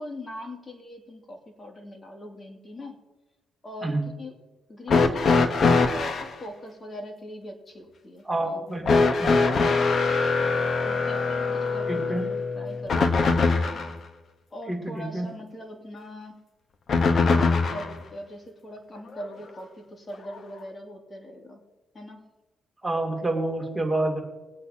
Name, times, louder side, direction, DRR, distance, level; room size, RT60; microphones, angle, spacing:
voice 1, 0.0-3.0 3.6-4.3 4.7-8.6 10.8-13.1 13.7-13.9 14.5-16.4 17.1-21.6 21.9-22.3, left 1 dB, 30° left, 2 dB, 2.6 m, -41 dB
sound 1, 4.9-6.3 8.9-14.0 16.9-18.0 19.2-19.3 20.3-20.4, left 4 dB, 50° left, 1.1 m, -22 dB
voice 2, 8.2-8.8 9.2-9.4 11.9-12.2 14.7-15.3 22.8-24.2, right 2 dB, 10° right, 0 dB, 2.8 m, -28 dB
22.5 x 8.6 x 2.9 m, 1.1 s
cardioid pair, 90°, 0 cm